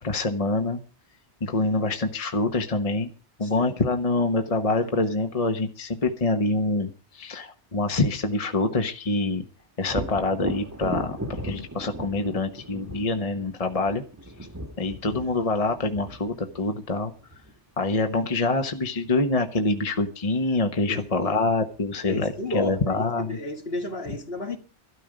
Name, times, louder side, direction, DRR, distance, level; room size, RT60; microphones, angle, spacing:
voice 1, 0.0-0.8 1.4-3.1 3.4-9.4 9.8-14.0 14.8-17.1 17.8-23.4, left 3 dB, 35° left, 1.1 m, -25 dB
Thunder, 9.9-17.5 21.2-21.3 21.8-22.6, right 1 dB, 15° right, 1.3 m, -36 dB
voice 2, 20.9-21.4 22.1-24.6, left 2 dB, 60° left, 2.3 m, -33 dB
15.5 x 13.0 x 5.1 m
omnidirectional pair, 1.2 m